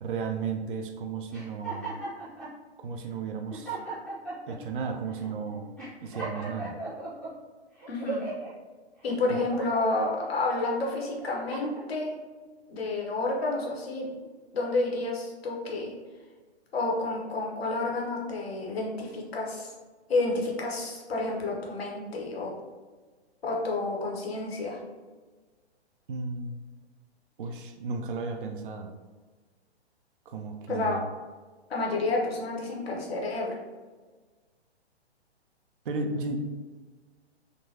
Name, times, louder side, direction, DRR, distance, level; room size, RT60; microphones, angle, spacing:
voice 1, 0.0-2.0 2.8-3.8 4.5-5.8 6.0-6.8 9.3-9.4 26.1-26.6 27.4-28.9 30.3-31.1 35.8-36.4, right 4 dB, 50° right, 4 dB, 0.4 m, -34 dB
sound 1, 1.3-2.5 3.1-3.2 3.5-4.6 5.1-5.3 5.8-7.3 7.8-8.5 9.0-10.3 10.8-11.9, right 3 dB, 5° left, 0.5 m, -37 dB
voice 2, 7.9-8.2 9.0-12.1 12.7-14.1 14.5-15.9 16.7-19.7 20.1-22.5 23.4-24.8 30.7-31.0 31.7-33.6, left 2 dB, 65° left, -2 dB, 1.0 m, -30 dB
3.6 x 2.2 x 2.8 m, 1.4 s
figure-of-eight pair, 125°, 33 cm